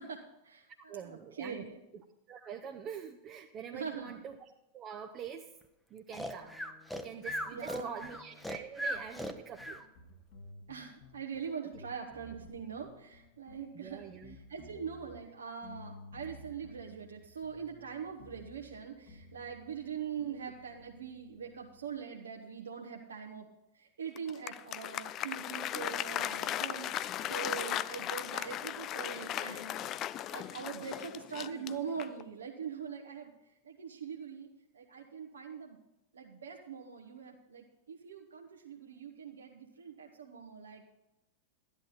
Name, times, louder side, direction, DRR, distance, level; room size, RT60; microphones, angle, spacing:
voice 1, 0.0-1.8 3.7-4.2 7.5-8.1 10.7-23.5 23.7-35.8 36.1-40.9, right 7 dB, 65° right, 0 dB, 1.3 m, -43 dB
voice 2, 0.9-1.7 1.9-2.0 2.3-4.4 4.7-5.5 5.9-6.6 7.0-9.8 13.7-14.4 20.2-20.3, right 7 dB, 30° right, 4 dB, 0.9 m, -45 dB
Breathing, 6.1-9.8, equal, 5° left, 1.0 m, -38 dB
sound 1, 6.4-21.9, left 2 dB, 50° left, 1.8 m, -56 dB
Applause, 24.2-32.3, left 12 dB, 35° left, 0.4 m, -37 dB
13.5 x 11.0 x 4.2 m, 0.91 s
figure-of-eight pair, 90°, 0 cm